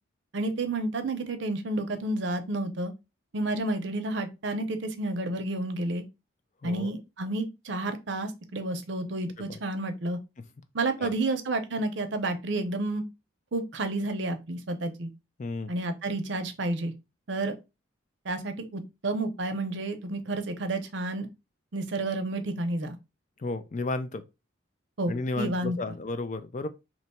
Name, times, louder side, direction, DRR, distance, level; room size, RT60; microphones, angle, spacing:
voice 1, 0.3-2.9 3.3-6.0 6.6-10.2 10.7-13.0 13.5-15.1 15.7-16.9 17.3-17.5 18.2-21.3 21.7-23.0 25.0-25.9, right 2 dB, 60° right, 0.6 m, -30 dB
voice 2, 15.4-15.7 23.4-24.2 25.1-26.7, left 3 dB, 35° left, 0.4 m, -33 dB
2.9 x 2.2 x 4.1 m
head